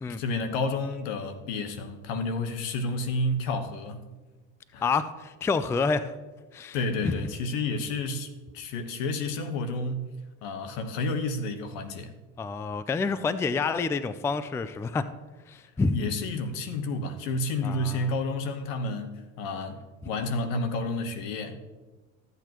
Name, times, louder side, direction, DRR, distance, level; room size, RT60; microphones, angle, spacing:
voice 1, 0.2-4.1 4.7-4.9 6.7-10.1 10.4-12.1 15.9-21.6, left 2 dB, 75° left, 1.2 m, -30 dB
voice 2, 4.8-6.1 6.5-6.8 7.0-7.1 12.4-15.1 15.5-16.0 17.6-18.1, left 4 dB, 10° left, 0.3 m, -28 dB
13.5 x 8.2 x 3.0 m
hypercardioid pair, 85°, 38 cm